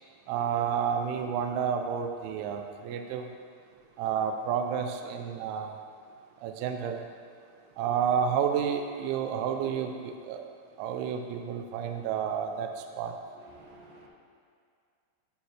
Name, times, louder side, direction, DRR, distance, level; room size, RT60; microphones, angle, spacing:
voice 1, 0.3-3.3 4.0-5.8 6.4-7.1 7.8-10.4 10.8-12.7 13.0-13.2, right 7 dB, 80° right, 5 dB, 2.8 m, -30 dB
voice 2, 13.3-14.1, right 2 dB, 60° right, -6 dB, 2.7 m, -53 dB
11.5 x 8.3 x 3.3 m, 2.3 s
omnidirectional pair, 5.7 m